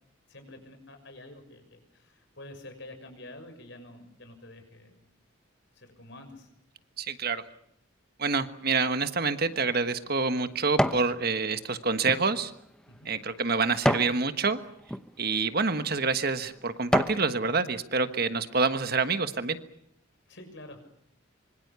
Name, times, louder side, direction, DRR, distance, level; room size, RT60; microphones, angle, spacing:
voice 1, 0.3-5.1 5.7-6.5 12.9-13.2 20.3-20.9, left 1 dB, 60° left, 7 dB, 6.6 m, -48 dB
voice 2, 7.0-7.4 8.2-12.5 13.0-14.6 15.2-19.6, right 4 dB, 50° right, 10 dB, 1.4 m, -27 dB
sound 1, 9.3-11.1 11.6-14.2 14.8-15.0 15.7-15.9 16.4-17.3 17.7-17.8, equal, 5° left, 1.0 m, -30 dB
25.5 x 24.5 x 6.9 m, 0.74 s
head